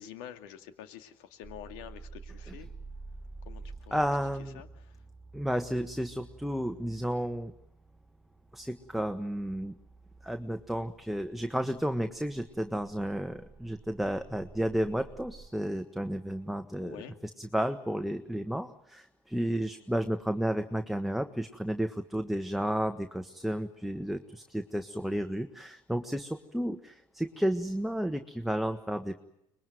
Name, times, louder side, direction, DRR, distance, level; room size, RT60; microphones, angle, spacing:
voice 1, 0.0-2.7 3.5-4.1 4.5-5.0 16.8-17.2, left 10 dB, 85° left, 8 dB, 2.5 m, -47 dB
sound 1, 1.4-15.5, right 4 dB, 20° right, 2.0 m, -50 dB
voice 2, 3.9-4.6 5.3-7.5 8.5-9.7 10.2-17.0 17.4-29.1, equal, ahead, 6 dB, 1.4 m, -32 dB
24.5 x 21.5 x 9.4 m, 0.81 s
supercardioid pair, 90°, 11 cm